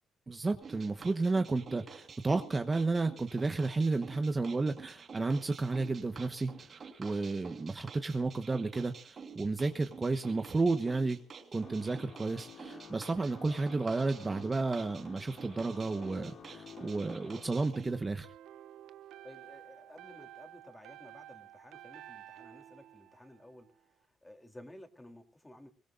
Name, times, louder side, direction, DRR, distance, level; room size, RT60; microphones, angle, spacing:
voice 1, 0.3-11.2 11.5-18.3, right 3 dB, 25° right, 7 dB, 1.2 m, -32 dB
sound 1, 0.6-17.9, right 5 dB, 45° right, 5.2 m, -50 dB
sound 2, 11.5-17.6, left 6 dB, 65° left, 2.8 m, -52 dB
sound 3, 17.9-23.8, right 12 dB, 85° right, 0.8 m, -52 dB
voice 2, 19.2-25.7, left 1 dB, 10° left, 5 dB, 3.3 m, -54 dB
22.5 x 18.5 x 2.6 m, 0.38 s
cardioid pair, 90°, 0 cm